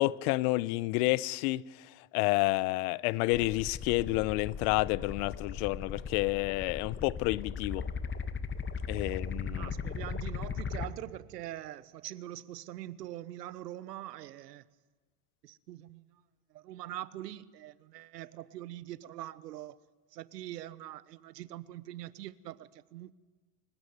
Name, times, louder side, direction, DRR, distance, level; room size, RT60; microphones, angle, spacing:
voice 1, 0.0-1.6 2.1-7.9 8.9-9.7, left 20 dB, 65° left, 0.9 m, -29 dB
sound 1, 3.3-10.9, left 5 dB, 25° left, 1.7 m, -38 dB
voice 2, 9.5-14.7 15.4-16.2 16.5-19.8 20.1-23.1, right 14 dB, 90° right, 1.1 m, -43 dB
29.0 x 16.0 x 9.7 m
hypercardioid pair, 95°, 47 cm